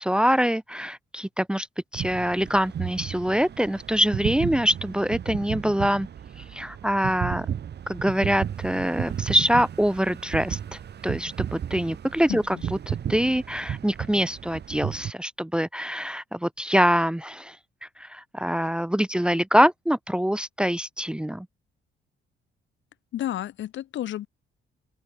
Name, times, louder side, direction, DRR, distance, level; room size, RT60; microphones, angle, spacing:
voice 1, 0.0-1.7 1.9-6.1 6.5-7.5 7.9-10.6 11.0-12.6 12.9-17.6 18.0-21.5, equal, 5° right, 0.8 m, -24 dB
sound 1, 1.9-15.1, right 9 dB, 55° right, 3.1 m, -34 dB
voice 2, 12.3-12.6 23.1-24.3, left 12 dB, 70° left, 1.2 m, -31 dB
open air
cardioid pair, 90°, 20 cm